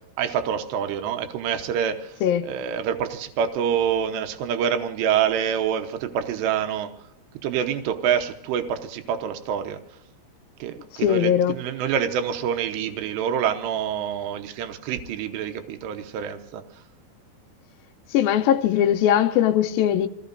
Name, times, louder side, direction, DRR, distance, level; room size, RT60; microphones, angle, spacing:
voice 1, 0.2-6.9 7.4-9.8 10.6-16.6, right 8 dB, 90° right, 3.1 m, -26 dB
voice 2, 11.0-11.5 18.1-20.1, left 10 dB, 75° left, 2.3 m, -20 dB
28.0 x 17.5 x 2.6 m
omnidirectional pair, 4.8 m